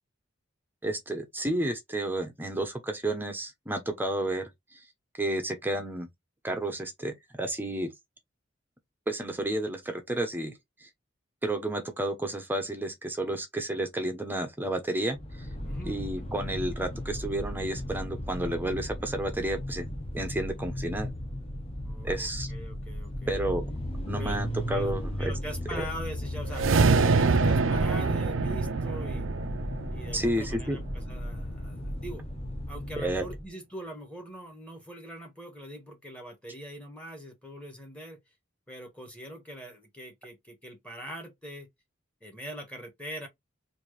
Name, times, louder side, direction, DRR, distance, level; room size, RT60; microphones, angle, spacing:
voice 1, 0.8-4.8 5.2-6.1 6.4-7.9 9.1-10.5 10.8-10.9 11.4-15.2 15.9-19.9 20.1-21.1 22.0-22.5 23.3-23.7 24.0-25.3 25.7-25.9 30.1-30.8 33.0-33.3, right 1 dB, 10° right, 0.8 m, -31 dB
sound 1, 15.1-33.5, equal, 30° left, 1.0 m, -36 dB
voice 2, 15.6-16.0 21.8-23.3 24.2-24.4 24.7-26.7 27.0-29.3 29.9-32.2 32.7-38.2 38.7-41.7 42.2-43.3, equal, 5° left, 1.4 m, -42 dB
sound 2, 26.5-30.9, right 4 dB, 80° right, 0.5 m, -25 dB
4.4 x 2.7 x 3.1 m
head